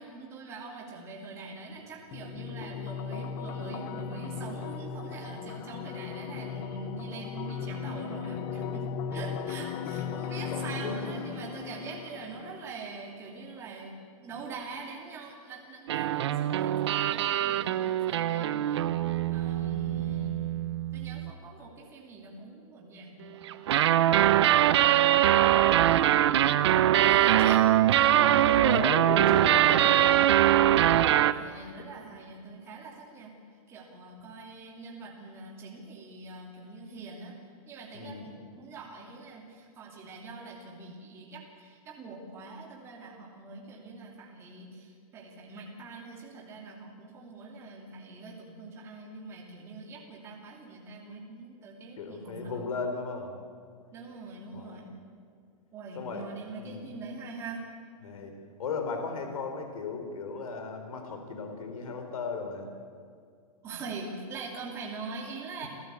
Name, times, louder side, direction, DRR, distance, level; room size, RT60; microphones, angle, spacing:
voice 1, 0.0-8.8 9.1-13.9 14.2-18.9 19.3-20.3 20.9-24.5 25.2-26.3 27.0-28.9 29.3-29.7 31.3-33.3 33.7-37.4 37.7-52.6 53.9-54.8 55.7-57.6 63.6-65.7, right 3 dB, 15° right, -1 dB, 2.8 m, -43 dB
sound 1, 2.1-13.1, left 6 dB, 15° left, 0.5 m, -37 dB
voice 2, 10.5-11.0 19.8-20.2 26.9-27.5 28.1-30.6 37.9-38.2 52.0-53.3 54.5-54.8 56.0-56.3 56.6-56.9 58.0-58.3 58.6-62.7, left 4 dB, 70° left, 5 dB, 4.3 m, -36 dB
sound 2, 15.9-21.3 23.5-31.3, right 12 dB, 45° right, 0.8 m, -23 dB
28.5 x 14.5 x 8.4 m, 2.2 s
supercardioid pair, 175°, 19 cm